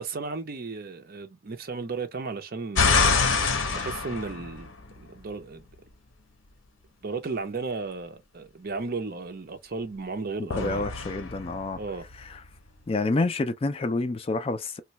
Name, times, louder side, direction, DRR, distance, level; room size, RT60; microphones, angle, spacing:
voice 1, 0.0-3.3 3.7-5.6 7.0-10.9 11.8-12.1, right 4 dB, 50° right, 0.6 m, -34 dB
sound 1, 2.7-5.2 10.5-12.5, left 4 dB, 70° left, 0.8 m, -26 dB
voice 2, 10.6-11.8 12.3-12.4 12.9-14.8, left 3 dB, 30° left, 0.4 m, -28 dB
3.1 x 2.2 x 2.8 m
head